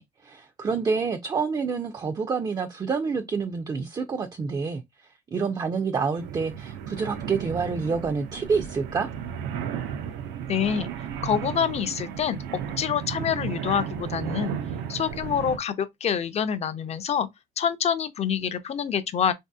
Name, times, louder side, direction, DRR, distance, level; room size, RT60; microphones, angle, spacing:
voice 1, 0.0-4.8 5.3-9.1, right 5 dB, 25° right, 0.4 m, -28 dB
sound 1, 6.2-15.6, right 8 dB, 85° right, 0.5 m, -34 dB
voice 2, 10.5-10.9 11.2-14.5 14.9-17.3 17.6-19.3, left 8 dB, 40° left, 0.5 m, -26 dB
3.5 x 2.7 x 2.2 m
cardioid pair, 110°, 17 cm